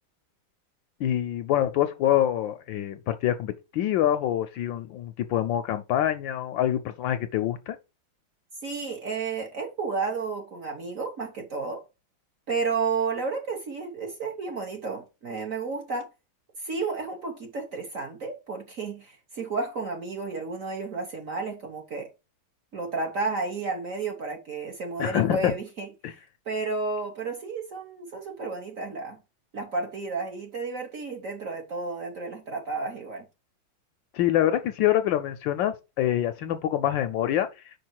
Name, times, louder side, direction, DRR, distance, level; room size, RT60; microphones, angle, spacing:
voice 1, 1.0-7.8 25.0-25.5 26.0-26.1 34.1-37.5, left 11 dB, 75° left, 1.2 m, -25 dB
voice 2, 8.6-11.8 12.5-16.1 16.6-22.1 22.7-25.9 26.4-29.2 29.5-33.3, right 4 dB, 50° right, 1.2 m, -32 dB
5.4 x 4.8 x 4.5 m
omnidirectional pair, 2.3 m